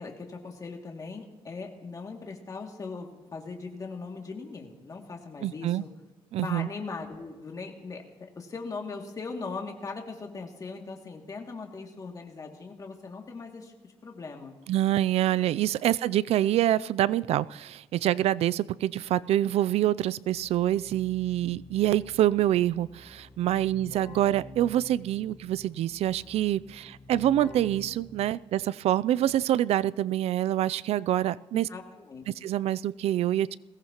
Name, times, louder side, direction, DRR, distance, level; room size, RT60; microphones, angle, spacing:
voice 1, 0.0-5.9 6.4-8.0 8.4-14.6 31.5-32.3, left 4 dB, 35° left, 1 dB, 2.4 m, -39 dB
voice 2, 5.4-5.8 6.3-6.7 14.7-31.7 32.4-33.6, right 12 dB, 75° right, 19 dB, 0.4 m, -26 dB
Keyboard (musical), 20.3-28.6, left 1 dB, 55° left, 3.1 m, -49 dB
21.5 x 17.5 x 3.0 m, 1.2 s
cardioid pair, 130°, 11 cm